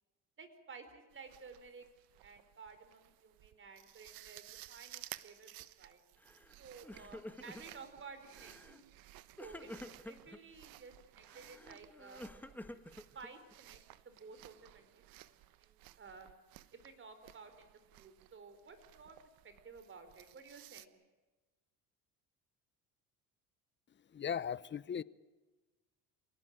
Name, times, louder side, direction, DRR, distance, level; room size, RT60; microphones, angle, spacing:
voice 1, 0.4-1.9 2.2-5.5 5.8-6.0 6.6-8.8 9.4-9.7 10.0-12.2 13.1-13.8 14.0-16.3 16.8-19.2 19.4-20.9, right 4 dB, 35° right, 10 dB, 4.7 m, -54 dB
sound 1, 1.1-20.9, right 16 dB, 70° right, 1.2 m, -57 dB
Crying sobbing, 6.2-6.5 6.8-7.8 8.3-8.8 9.4-10.4 11.3-13.5, left 1 dB, 5° left, 1.7 m, -50 dB
voice 2, 24.1-25.0, left 8 dB, 30° left, 19 dB, 0.8 m, -37 dB
27.5 x 18.5 x 9.0 m, 1.2 s
cardioid pair, 110°, 36 cm